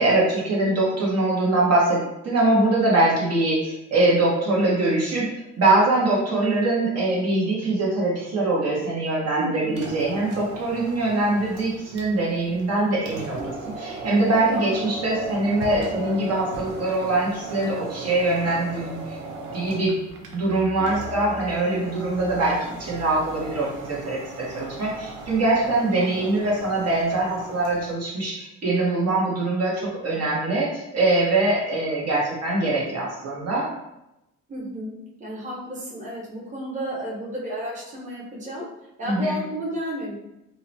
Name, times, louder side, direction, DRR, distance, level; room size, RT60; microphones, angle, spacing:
voice 1, 0.0-5.3 5.6-19.2 19.5-20.0 20.3-33.7 39.1-39.4, right 2 dB, 55° right, -5 dB, 1.0 m, -23 dB
voice 2, 9.4-9.9 14.5-14.9 20.8-21.1 26.0-26.3 34.5-38.6 39.0-40.1, equal, 25° right, -6 dB, 0.9 m, -32 dB
sound 1, 9.7-27.9, right 1 dB, 85° right, 0.6 m, -37 dB
2.7 x 2.1 x 2.7 m, 0.88 s
cardioid pair, 90°, 30 cm